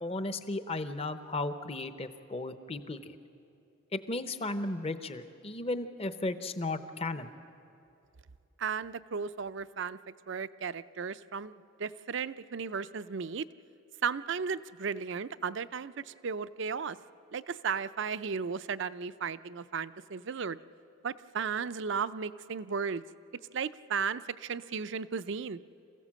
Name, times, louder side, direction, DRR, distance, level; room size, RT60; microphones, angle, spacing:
voice 1, 0.0-3.0 3.9-7.3, left 2 dB, 30° left, 10 dB, 0.8 m, -35 dB
voice 2, 8.6-13.4 14.0-17.0 17.3-20.6 21.0-23.0 23.5-25.6, right 6 dB, 55° right, 14 dB, 0.5 m, -35 dB
27.5 x 15.5 x 7.5 m, 2.8 s
head